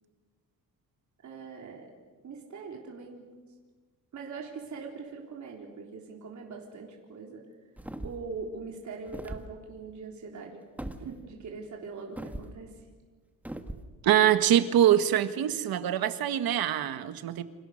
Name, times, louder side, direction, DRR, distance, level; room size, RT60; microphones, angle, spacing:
voice 1, 1.2-1.9 2.2-3.3 4.1-7.5 8.0-10.6 11.0-12.8, right 4 dB, 55° right, 0 dB, 4.0 m, -42 dB
sound 1, 7.8-8.3 9.1-9.5 10.8-11.0 12.2-12.5 13.4-13.9, right 1 dB, 5° right, 1.6 m, -39 dB
voice 2, 14.0-17.4, right 11 dB, 85° right, 10 dB, 1.7 m, -24 dB
29.0 x 27.5 x 6.6 m, 1.4 s
cardioid pair, 135°, 35 cm